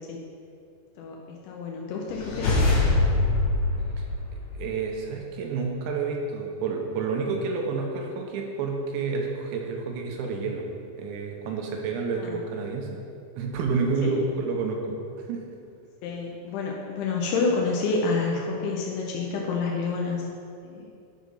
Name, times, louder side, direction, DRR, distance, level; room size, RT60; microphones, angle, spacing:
voice 1, 1.0-2.5 12.2-12.4 14.0-14.3 16.0-20.3 20.6-20.9, left 4 dB, 85° left, -1 dB, 3.2 m, -29 dB
sound 1, 2.1-4.9, left 2 dB, 55° left, 3.9 m, -24 dB
voice 2, 4.6-10.7 11.0-13.0 13.4-15.0 15.3-15.4, right 4 dB, 80° right, 1 dB, 3.2 m, -29 dB
10.5 x 6.1 x 5.5 m, 2.5 s
omnidirectional pair, 5.3 m